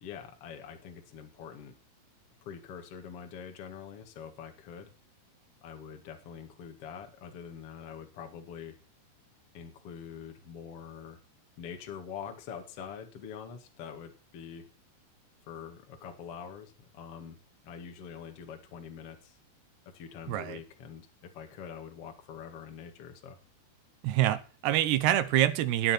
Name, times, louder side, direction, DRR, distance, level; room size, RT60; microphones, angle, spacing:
voice 1, 0.0-1.8 2.4-4.9 5.6-8.8 9.5-11.2 11.6-14.6 15.5-17.4 17.6-19.4 19.9-23.4, left 7 dB, 45° left, 5 dB, 2.2 m, -44 dB
voice 2, 20.3-20.6 24.0-25.9, right 13 dB, 75° right, 13 dB, 2.9 m, -26 dB
15.0 x 9.4 x 4.5 m, 0.35 s
omnidirectional pair, 5.1 m